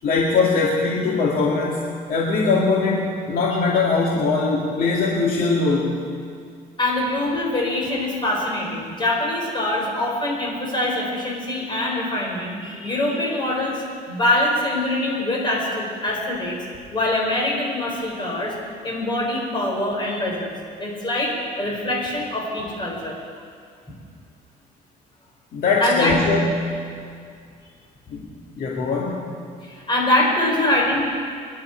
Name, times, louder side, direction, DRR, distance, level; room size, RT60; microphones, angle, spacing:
voice 1, 0.0-6.0 25.5-26.5 28.1-28.3 28.6-29.3, left 3 dB, 60° left, -3 dB, 2.2 m, -21 dB
voice 2, 6.8-16.6 16.9-18.5 18.8-20.5 20.8-23.1 25.8-26.2 29.7-31.0, left 1 dB, 30° left, -2 dB, 5.3 m, -24 dB
26.0 x 11.0 x 4.5 m, 2.3 s
cardioid pair, 110°, 17 cm